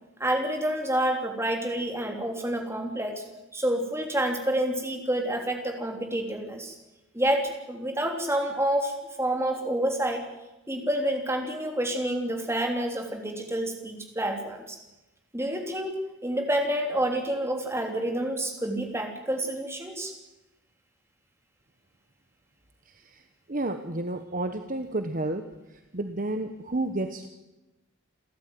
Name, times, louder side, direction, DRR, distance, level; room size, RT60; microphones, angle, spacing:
voice 1, 0.2-3.2 3.5-6.7 7.1-8.9 9.2-10.3 10.7-14.8 15.3-15.9 16.2-20.1, right 1 dB, 10° right, 3 dB, 3.3 m, -28 dB
voice 2, 22.9-27.3, right 2 dB, 40° right, 7 dB, 1.1 m, -32 dB
28.5 x 13.0 x 9.4 m, 1.0 s
head